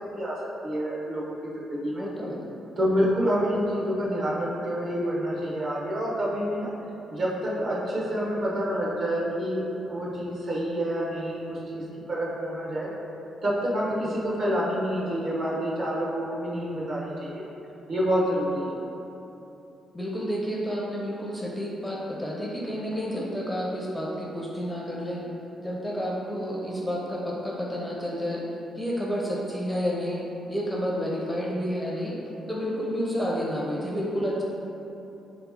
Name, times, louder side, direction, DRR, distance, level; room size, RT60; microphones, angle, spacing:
voice 1, 0.6-2.1 2.8-6.7 7.1-11.8 12.1-12.9 13.4-17.4 17.9-18.8, equal, 50° right, -5 dB, 1.0 m, -28 dB
voice 2, 1.9-2.5 19.9-25.2 25.6-28.4 28.8-32.1 32.5-34.4, equal, 5° left, -4 dB, 0.5 m, -30 dB
3.6 x 3.0 x 3.5 m, 3.0 s
cardioid pair, 90°, 0 cm